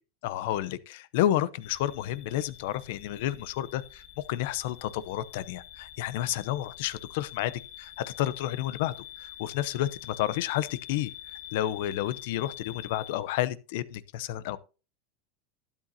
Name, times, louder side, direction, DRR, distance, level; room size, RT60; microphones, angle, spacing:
voice 1, 0.2-7.5 7.8-11.1 11.5-14.6, left 13 dB, 70° left, 0.7 m, -31 dB
sound 1, 1.6-13.2, left 11 dB, 40° left, 2.8 m, -46 dB
12.0 x 9.0 x 2.8 m
supercardioid pair, 125°, 0 cm